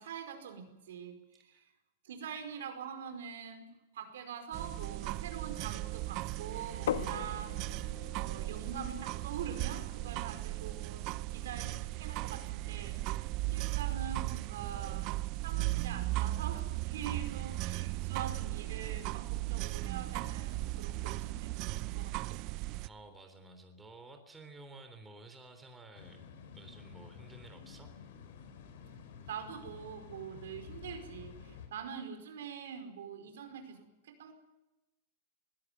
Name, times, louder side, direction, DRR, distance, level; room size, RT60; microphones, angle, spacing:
voice 1, 0.0-1.6 2.0-7.6 8.1-13.1 13.4-15.1 15.4-22.5 29.3-34.3, right 7 dB, 85° right, 7 dB, 4.9 m, -44 dB
sound 1, 4.5-22.9, right 18 dB, 40° right, 0.7 m, -37 dB
sound 2, 6.9-12.5, left 10 dB, 90° left, 1.4 m, -43 dB
voice 2, 22.8-27.9, right 2 dB, 10° right, 6 dB, 3.5 m, -53 dB
sound 3, 25.9-31.7, left 7 dB, 70° left, 5.0 m, -51 dB
21.5 x 16.5 x 9.4 m, 0.98 s
supercardioid pair, 145°, 0 cm